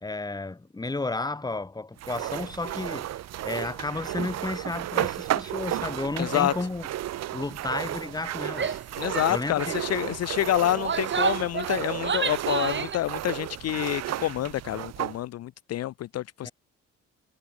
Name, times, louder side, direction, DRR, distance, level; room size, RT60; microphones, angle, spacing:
voice 1, 0.0-3.2 3.4-6.9 7.3-8.8 9.3-9.6 16.4-16.5, left 3 dB, 15° left, 1.2 m, -32 dB
sound 1, 2.0-15.2, right 13 dB, 60° right, 0.7 m, -33 dB
voice 2, 6.2-6.5 9.0-16.5, left 13 dB, 55° left, 0.5 m, -28 dB
Female speech woman speaking / Yell, 8.5-8.8 9.1-9.3 9.6-9.9 10.6-13.0, right 6 dB, 40° right, 2.8 m, -30 dB
cardioid pair, 90°, 30 cm